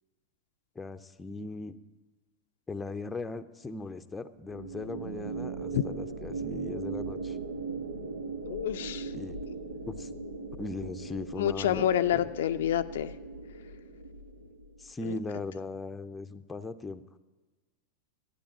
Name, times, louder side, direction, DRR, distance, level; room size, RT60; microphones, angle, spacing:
voice 1, 0.7-1.8 2.7-7.4 9.1-9.4 9.9-10.1 10.6-11.9 12.1-12.2 14.8-17.0, left 3 dB, 10° left, 9 dB, 0.6 m, -38 dB
sound 1, 4.4-14.9, right 4 dB, 75° right, 1.0 m, -39 dB
voice 2, 8.5-9.1 11.4-13.1 15.0-15.2, left 11 dB, 60° left, 9 dB, 0.4 m, -28 dB
12.5 x 8.5 x 8.4 m, 1.3 s
figure-of-eight pair, 90°, 0 cm